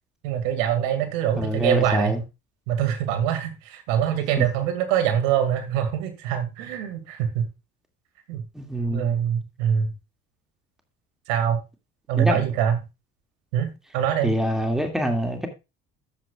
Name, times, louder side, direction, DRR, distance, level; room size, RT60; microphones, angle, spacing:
voice 1, 0.2-2.2 2.7-7.5 8.3-8.4 8.9-9.9 11.3-11.6 12.1-12.8 13.5-13.7 13.9-14.3, right 9 dB, 65° right, 2.3 m, -24 dB
voice 2, 1.4-2.2 4.4-4.5 8.5-9.2 12.2-12.4 14.2-15.5, equal, ahead, 2.3 m, -25 dB
13.5 x 8.4 x 2.4 m
figure-of-eight pair, 55°, 42 cm